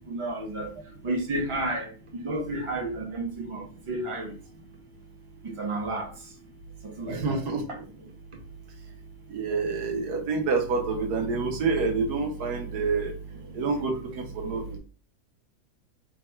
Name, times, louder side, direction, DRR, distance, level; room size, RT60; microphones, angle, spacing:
voice 1, 0.1-0.7 1.0-1.9 2.2-4.3 5.4-6.1 6.8-7.4, right 2 dB, 35° right, 0.5 m, -31 dB
voice 2, 7.1-7.8 9.3-13.2 13.5-14.8, right 4 dB, 75° right, 1.4 m, -28 dB
3.3 x 2.3 x 4.3 m
omnidirectional pair, 1.7 m